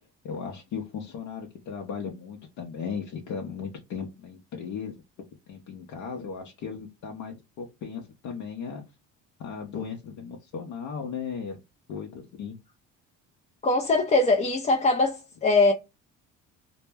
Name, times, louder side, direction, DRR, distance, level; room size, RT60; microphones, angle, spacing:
voice 1, 0.2-4.9 5.5-8.8 9.4-11.6 11.9-12.6, left 6 dB, 60° left, 0.7 m, -36 dB
voice 2, 13.6-15.7, left 2 dB, 20° left, 0.4 m, -22 dB
2.1 x 2.1 x 3.3 m
cardioid pair, 100°, 32 cm